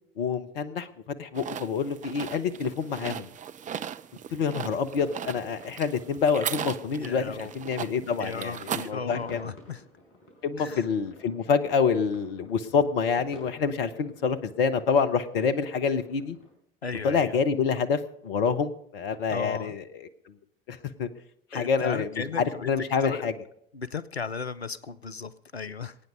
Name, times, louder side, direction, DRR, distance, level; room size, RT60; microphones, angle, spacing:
voice 1, 0.2-0.9 1.2-3.3 4.3-9.4 10.4-16.4 17.0-20.4 20.7-21.1 21.5-23.3, left 6 dB, 65° left, 11 dB, 1.0 m, -27 dB
sound 1, 1.4-8.9, right 9 dB, 25° right, 0.6 m, -37 dB
sound 2, 4.9-16.5, left 1 dB, 45° left, 4.9 m, -52 dB
voice 2, 7.0-7.5 7.8-9.8 10.6-10.9 16.8-17.3 19.3-19.8 21.5-23.3 23.7-26.0, left 5 dB, 90° left, 15 dB, 0.6 m, -36 dB
21.5 x 9.3 x 5.1 m, 0.75 s
figure-of-eight pair, 60°, 31 cm